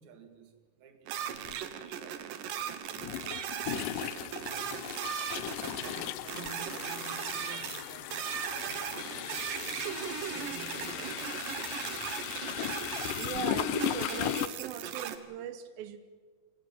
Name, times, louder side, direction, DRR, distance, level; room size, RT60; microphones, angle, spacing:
voice 1, 0.0-3.0 3.9-5.2 5.6-8.3 8.6-12.1 12.8-13.1, right 4 dB, 55° right, 3.2 m, -52 dB
sound 1, 1.1-15.2, right 10 dB, 70° right, 2.8 m, -38 dB
sound 2, 1.5-1.6 2.9-14.5, left 13 dB, 75° left, 2.3 m, -37 dB
voice 2, 13.1-16.0, right 10 dB, 85° right, 2.8 m, -39 dB
29.0 x 17.5 x 7.6 m
omnidirectional pair, 4.0 m